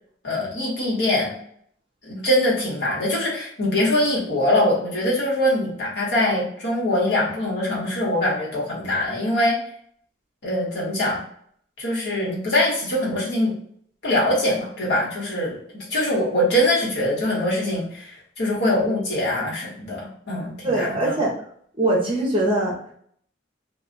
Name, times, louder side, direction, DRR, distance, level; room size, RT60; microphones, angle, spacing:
voice 1, 0.2-1.3 2.0-9.6 10.4-11.2 11.8-13.5 14.0-18.1 18.4-21.2, left 1 dB, 60° left, -5 dB, 1.2 m, -23 dB
voice 2, 20.6-21.3 21.8-22.8, right 1 dB, 25° right, -3 dB, 0.7 m, -22 dB
2.3 x 2.3 x 3.9 m, 0.63 s
head